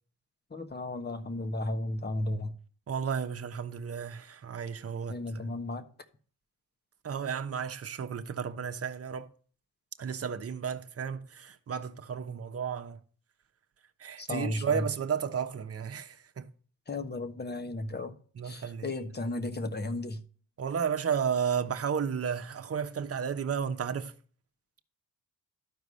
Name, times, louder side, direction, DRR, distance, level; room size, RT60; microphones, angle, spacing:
voice 1, 0.5-2.5 5.1-5.8 14.2-14.9 16.9-18.1 18.4-20.2, left 2 dB, 25° left, 1.3 m, -34 dB
voice 2, 2.9-5.2 7.0-9.3 10.0-13.0 14.0-16.5 18.4-18.9 20.6-24.1, right 7 dB, 40° right, 1.0 m, -33 dB
12.5 x 4.7 x 5.5 m
supercardioid pair, 70°, 36 cm